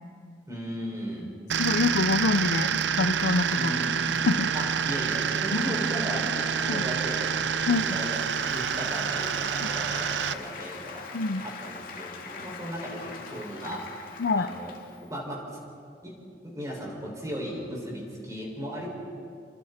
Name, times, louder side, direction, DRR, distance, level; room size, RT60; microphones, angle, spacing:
voice 1, 0.5-1.3 3.5-3.9 4.5-11.0 11.4-14.1 14.3-14.7 15.1-15.4 16.0-16.1 16.4-18.9, equal, 20° right, -2 dB, 6.0 m, -36 dB
sound 1, 1.5-10.3, right 7 dB, 80° right, 0.6 m, -27 dB
voice 2, 1.6-3.7 4.3-4.5 5.5-5.6 6.7-6.8 7.7-8.0 11.1-11.4 14.2-14.5, left 3 dB, 70° left, 8 dB, 0.7 m, -26 dB
Applause, 7.7-15.1, left 4 dB, 50° left, 2.3 m, -42 dB
29.5 x 25.0 x 4.4 m, 2.3 s
head